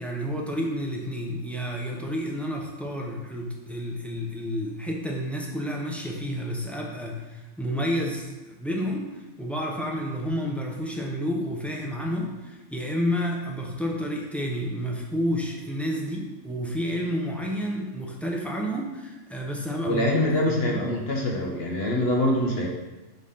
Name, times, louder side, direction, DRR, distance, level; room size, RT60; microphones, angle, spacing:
voice 1, 0.0-20.8, equal, ahead, -1 dB, 0.6 m, -30 dB
voice 2, 19.9-22.7, left 1 dB, 55° left, -2 dB, 1.0 m, -24 dB
5.0 x 4.1 x 5.7 m, 1.1 s
omnidirectional pair, 1.4 m